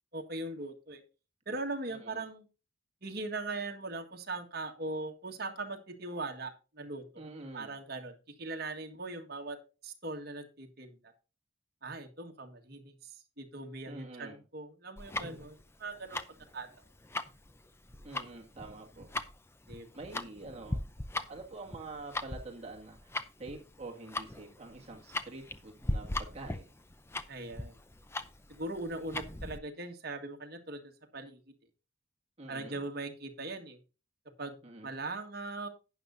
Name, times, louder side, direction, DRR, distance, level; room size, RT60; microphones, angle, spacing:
voice 1, 0.1-1.0 1.4-2.4 3.0-7.2 7.5-9.6 9.8-11.1 11.8-16.2 16.5-16.7 19.7-19.9 27.3-27.8 28.5-31.4 32.5-33.8 34.4-35.7, right 2 dB, 50° right, 4 dB, 1.6 m, -40 dB
voice 2, 1.9-2.2 7.2-7.7 13.9-14.4 18.0-19.1 19.9-20.8 21.3-23.1 23.4-26.7 32.4-32.8 34.6-35.0, right 2 dB, 30° right, 0 dB, 2.0 m, -46 dB
Tick-tock, 15.0-29.6, left 2 dB, 10° left, 0.5 m, -39 dB
11.5 x 9.4 x 2.6 m, 0.32 s
head